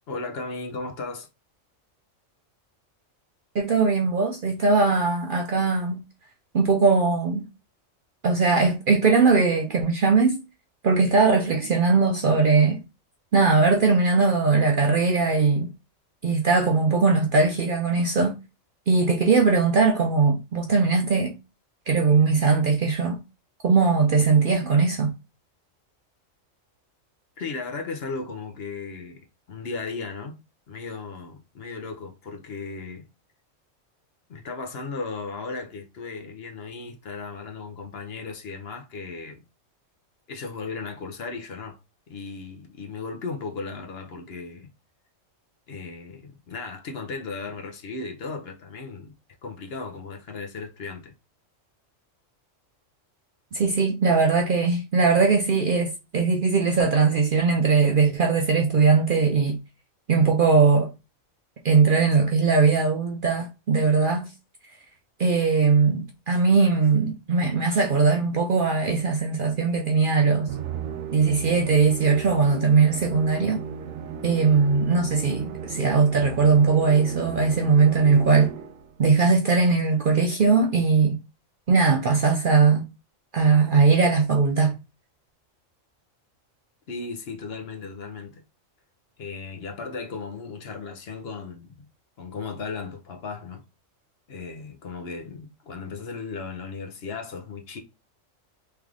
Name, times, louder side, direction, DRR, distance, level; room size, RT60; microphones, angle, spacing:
voice 1, 0.1-1.3 27.4-29.2 29.5-30.4 30.7-33.0 34.3-39.4 40.3-41.8 42.1-44.7 45.7-49.1 49.4-51.1 86.9-88.4 89.2-91.8 92.2-93.6 94.3-97.8, left 4 dB, 55° left, 0.9 m, -36 dB
voice 2, 3.5-6.0 6.5-7.5 8.2-10.4 10.8-12.8 13.3-15.7 16.2-18.3 18.9-21.3 21.9-23.2 23.6-25.1 53.5-59.6 60.1-60.9 61.6-64.3 65.2-70.5 71.1-73.6 74.2-78.5 79.0-81.2 81.7-82.8 83.3-84.7, right 4 dB, 55° right, 0.6 m, -20 dB
Musical instrument, 70.5-79.0, right 7 dB, 90° right, 1.0 m, -36 dB
3.4 x 3.2 x 3.6 m
omnidirectional pair, 1.3 m